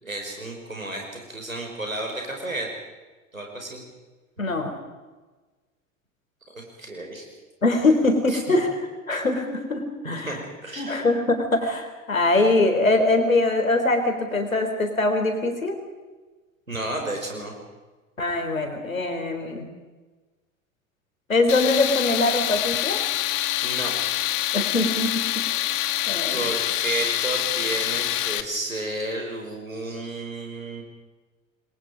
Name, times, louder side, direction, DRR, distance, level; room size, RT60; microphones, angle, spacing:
voice 1, 0.0-2.7 3.3-3.8 6.5-7.2 8.3-8.4 10.0-10.9 16.7-17.5 23.6-23.9 26.3-30.8, right 2 dB, 90° right, 1 dB, 5.4 m, -32 dB
voice 2, 4.4-4.7 7.6-8.7 9.1-10.4 10.8-15.8 18.2-19.6 21.3-23.0 24.5-25.4 26.1-26.4, left 2 dB, 85° left, 5 dB, 3.8 m, -22 dB
Tools, 21.5-28.4, left 15 dB, 45° left, 1.7 m, -26 dB
28.5 x 21.0 x 5.2 m, 1.3 s
figure-of-eight pair, 75°, 40 cm